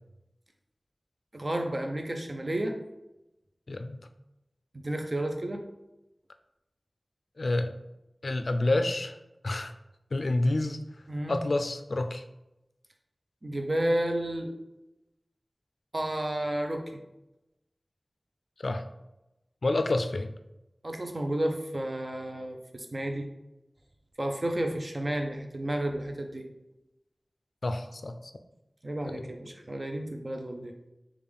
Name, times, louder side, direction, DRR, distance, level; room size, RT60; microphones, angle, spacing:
voice 1, 1.3-2.8 4.7-5.6 11.1-11.4 13.4-14.5 15.9-17.0 20.8-23.3 24.2-26.4 28.8-30.7, right 1 dB, 45° right, 4 dB, 0.6 m, -31 dB
voice 2, 3.7-4.0 7.4-7.7 8.2-9.2 9.4-9.7 10.1-10.8 11.3-12.2 18.6-18.8 19.6-20.3 27.6-28.1 29.2-29.3, left 2 dB, 75° left, 8 dB, 0.3 m, -28 dB
5.2 x 2.4 x 3.4 m, 0.93 s
wide cardioid pair, 55°, 0 cm